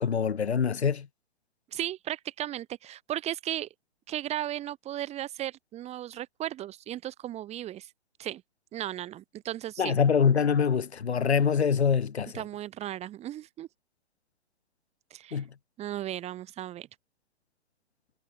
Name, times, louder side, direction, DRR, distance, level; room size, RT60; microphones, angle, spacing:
voice 1, 0.0-1.1 9.8-12.4 15.3-15.5, left 6 dB, 85° left, 1.2 m, -24 dB
voice 2, 1.7-3.7 4.1-7.9 8.2-8.4 8.7-10.0 12.3-13.7 15.1-15.4 15.8-16.9, right 12 dB, 20° right, 2.5 m, -36 dB
hypercardioid pair, 130°, 32 cm